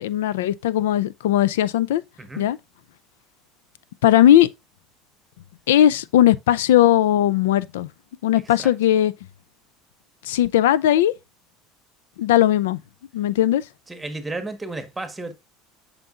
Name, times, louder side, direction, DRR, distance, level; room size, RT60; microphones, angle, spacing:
voice 1, 0.0-2.0 2.4-2.6 4.0-4.5 5.7-7.9 8.2-9.1 10.2-11.1 12.2-12.8 13.1-13.6, left 12 dB, 90° left, 0.4 m, -18 dB
voice 2, 13.9-15.3, right 2 dB, 10° right, 1.4 m, -32 dB
7.7 x 5.9 x 2.5 m
supercardioid pair, 110°, 0 cm